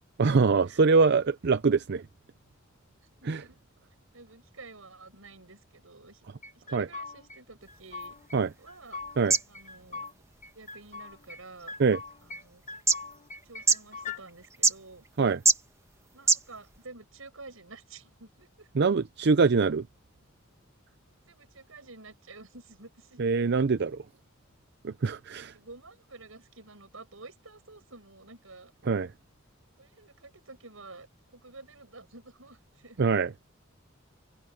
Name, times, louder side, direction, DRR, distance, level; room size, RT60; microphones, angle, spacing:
voice 1, 0.2-2.0 3.3-3.4 6.7-6.9 8.3-8.5 9.2-9.4 11.8-12.0 15.2-15.4 18.7-19.9 23.2-24.0 24.8-25.5 28.8-29.1 33.0-33.3, right 4 dB, 55° right, 0.5 m, -24 dB
voice 2, 3.2-3.6 4.1-6.2 6.5-8.2 8.6-9.0 9.5-10.0 10.5-11.7 12.2-12.6 13.4-15.0 16.1-18.7 21.3-23.2 25.4-28.7 29.8-31.1 31.3-33.0, right 3 dB, 85° right, 6.5 m, -50 dB
sound 1, 6.4-7.4 7.7-8.4 8.7-10.1 10.4-11.4 11.7-12.4 12.7-14.2, left 4 dB, 35° left, 1.4 m, -41 dB
sound 2, 7.6-16.9, right 4 dB, 15° right, 1.9 m, -32 dB
head